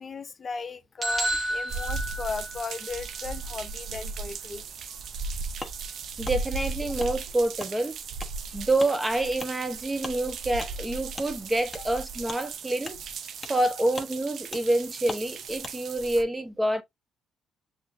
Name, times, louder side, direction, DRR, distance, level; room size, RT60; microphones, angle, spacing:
voice 1, 0.0-4.6 4.9-5.0 5.6-6.0 8.6-8.7, left 4 dB, 40° left, 0.6 m, -37 dB
sound 1, 1.0-2.9, right 1 dB, 35° right, 1.4 m, -30 dB
sound 2, 1.7-16.2, right 4 dB, 65° right, 0.5 m, -37 dB
Wood, 5.6-5.8 6.2-6.4 7.0-7.1 7.6-7.7 8.2-8.3 8.8-8.9 9.4-9.5 10.0-10.2 10.6-10.7 11.1-11.3 11.7-11.8 12.3-12.4 12.8-13.0 13.4-13.6 13.9-14.1 14.5-14.6 15.1-15.2 15.6-15.8, left 2 dB, 15° left, 1.1 m, -39 dB
voice 2, 6.2-8.0 8.5-13.0 13.5-16.8, right 1 dB, 15° right, 0.8 m, -27 dB
6.7 x 2.7 x 2.5 m
cardioid pair, 90°, 0 cm